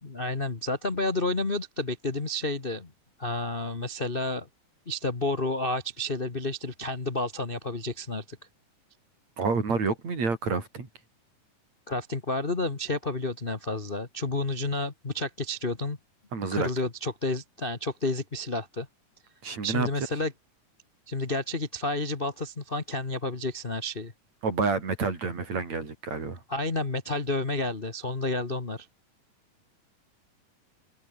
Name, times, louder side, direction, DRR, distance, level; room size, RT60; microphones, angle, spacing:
voice 1, 0.0-2.9 3.2-4.5 4.9-8.4 11.9-16.0 16.5-18.9 19.6-20.3 21.1-24.1 26.5-28.9, left 2 dB, 30° left, 1.0 m, -30 dB
voice 2, 9.4-10.9 16.3-16.7 19.4-19.9 24.4-26.4, right 4 dB, 55° right, 6.1 m, -28 dB
omnidirectional pair, 3.9 m